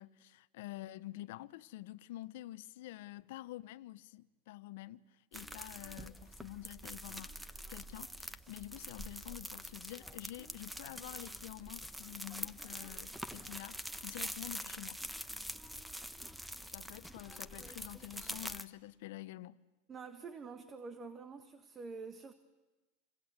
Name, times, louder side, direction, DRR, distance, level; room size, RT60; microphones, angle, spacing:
voice 1, 0.0-15.0 16.7-19.6, left 16 dB, 65° left, 0.9 m, -48 dB
sound 1, 5.3-18.6, equal, 5° right, 1.2 m, -45 dB
voice 2, 19.9-22.3, right 4 dB, 30° right, 1.6 m, -47 dB
28.5 x 25.5 x 8.1 m
hypercardioid pair, 95°, 0 cm